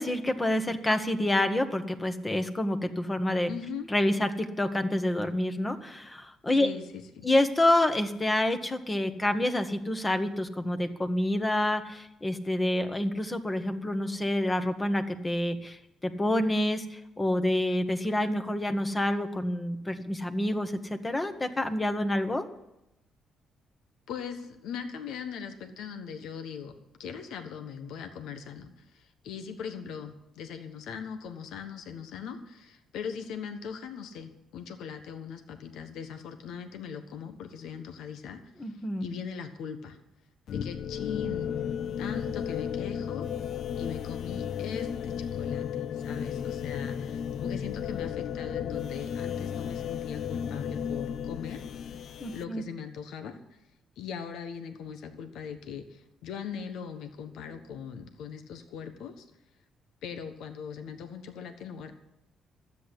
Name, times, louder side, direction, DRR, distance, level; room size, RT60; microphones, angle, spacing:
voice 1, 0.0-3.5 3.9-6.7 7.2-22.4 38.6-39.1 52.2-52.6, left 1 dB, 20° left, 7 dB, 1.5 m, -28 dB
voice 2, 3.5-3.9 6.6-7.3 24.1-26.7 27.0-40.0 40.5-41.5 42.0-43.5 43.8-51.6 52.0-53.6 54.0-59.3 60.0-61.9, left 7 dB, 85° left, 7 dB, 1.3 m, -40 dB
sound 1, 40.5-52.4, left 8 dB, 65° left, 0.5 m, -34 dB
13.0 x 8.5 x 9.9 m, 0.86 s
cardioid pair, 90°, 0 cm